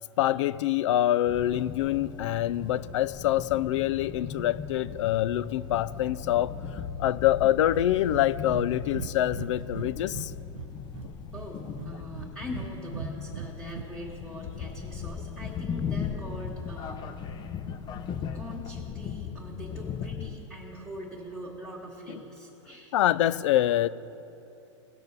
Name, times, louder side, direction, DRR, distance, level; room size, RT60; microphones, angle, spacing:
voice 1, 0.2-6.5 7.0-10.3 22.9-23.9, left 13 dB, 70° left, 0.4 m, -25 dB
sound 1, 1.3-20.4, left 6 dB, 25° left, 0.6 m, -38 dB
Breathing, 7.7-8.3 8.5-8.7 8.9-10.3 10.5-11.5 11.8-12.7 12.9-13.8, right 10 dB, 85° right, 0.4 m, -38 dB
voice 2, 11.3-17.0 18.3-22.9, equal, 5° right, 1.7 m, -42 dB
18.0 x 6.5 x 4.1 m
hypercardioid pair, 120°, 16 cm